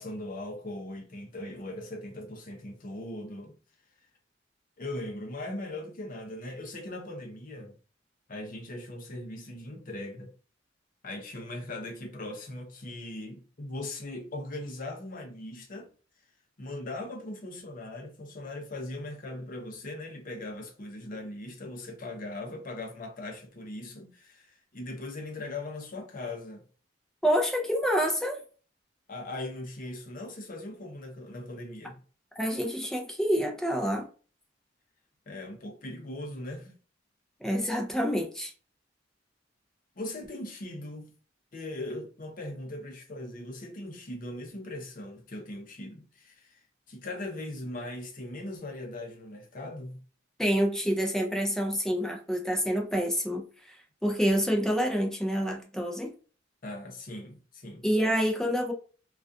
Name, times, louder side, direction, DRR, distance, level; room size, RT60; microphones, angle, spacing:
voice 1, 0.0-3.6 4.8-7.7 8.3-10.3 11.0-15.9 16.6-26.7 29.1-32.0 35.3-36.8 40.0-41.1 41.5-46.6 46.9-50.0 56.6-57.9, left 1 dB, 45° left, 0.6 m, -39 dB
voice 2, 27.2-28.4 32.4-34.1 37.4-38.5 50.4-56.1 57.8-58.7, equal, 5° left, 0.4 m, -27 dB
2.3 x 2.3 x 2.5 m
head